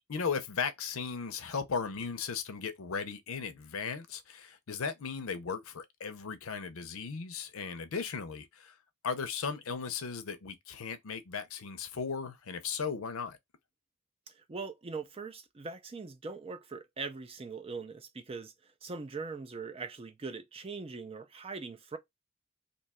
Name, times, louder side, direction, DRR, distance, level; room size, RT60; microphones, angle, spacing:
voice 1, 0.1-8.7 9.0-13.4, left 5 dB, 85° left, 0.6 m, -36 dB
voice 2, 14.3-18.5 18.8-22.0, right 4 dB, 25° right, 0.4 m, -41 dB
2.8 x 2.3 x 4.1 m
head